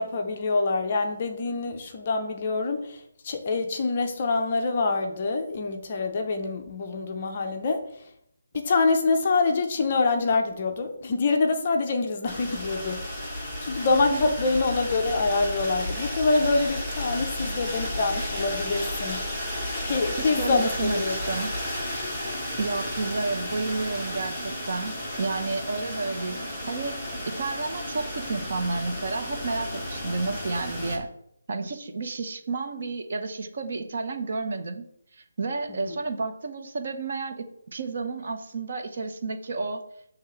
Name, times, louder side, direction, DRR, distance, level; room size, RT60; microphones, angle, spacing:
voice 1, 0.0-3.0 3.2-7.8 8.5-13.2 13.6-19.2 19.8-21.2 35.8-36.0, left 3 dB, 20° left, 4 dB, 0.5 m, -25 dB
sound 1, 12.3-31.0, left 1 dB, ahead, 0.9 m, -33 dB
voice 2, 20.1-21.5 22.6-31.1 31.5-34.9 35.1-39.8, right 3 dB, 35° right, 6 dB, 0.6 m, -31 dB
6.5 x 3.3 x 5.7 m, 0.73 s
hypercardioid pair, 180°, 0 cm